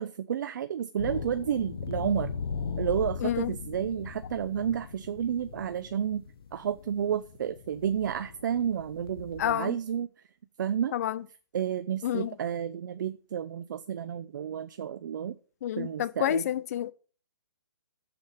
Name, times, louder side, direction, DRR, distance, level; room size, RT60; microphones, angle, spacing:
voice 1, 0.0-2.3 2.8-6.2 6.5-10.1 10.6-11.0 11.5-15.4 15.8-16.5, right 9 dB, 50° right, 0.7 m, -31 dB
sound 1, 1.0-9.5, left 5 dB, 70° left, 1.2 m, -38 dB
voice 2, 3.2-3.5 9.4-9.8 10.9-11.2 12.0-12.3 15.6-16.9, left 11 dB, 40° left, 0.6 m, -29 dB
7.7 x 6.8 x 8.0 m
hypercardioid pair, 150°, 13 cm